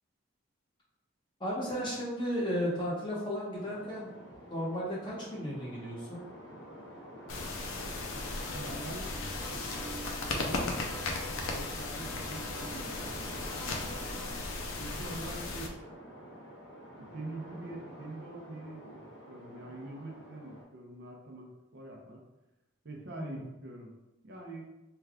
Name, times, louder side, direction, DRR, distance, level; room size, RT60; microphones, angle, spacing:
voice 1, 1.4-4.1 4.5-6.2 23.1-23.5, equal, 25° left, -5 dB, 0.8 m, -34 dB
sound 1, 3.5-20.6, equal, 55° left, 1.0 m, -49 dB
sound 2, 7.3-15.7, left 3 dB, 85° left, 0.5 m, -37 dB
sound 3, 8.4-14.4, right 1 dB, 5° left, 0.4 m, -47 dB
voice 2, 8.5-9.2 10.3-10.8 11.5-13.3 14.8-15.8 17.0-22.2 22.8-23.9 24.2-24.6, right 1 dB, 55° right, 0 dB, 0.6 m, -44 dB
3.3 x 2.3 x 3.5 m, 0.99 s
head